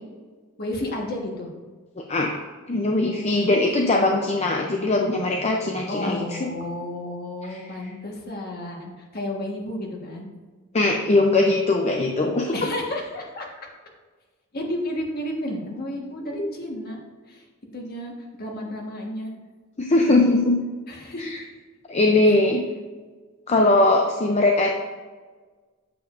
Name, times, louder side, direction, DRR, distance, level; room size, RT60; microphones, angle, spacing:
voice 1, 0.6-1.5 3.0-3.6 5.9-10.3 12.5-13.5 14.5-17.0 17.3-17.4 17.7-19.3 20.9-21.3, left 1 dB, 50° left, 0 dB, 1.4 m, -32 dB
voice 2, 2.0-2.4 2.7-6.5 7.5-7.6 10.7-12.5 16.4-16.5 19.8-20.6 21.2-21.4 21.9-22.6 23.5-24.7, left 2 dB, 35° left, 2 dB, 0.5 m, -20 dB
8.5 x 7.3 x 2.5 m, 1.4 s
head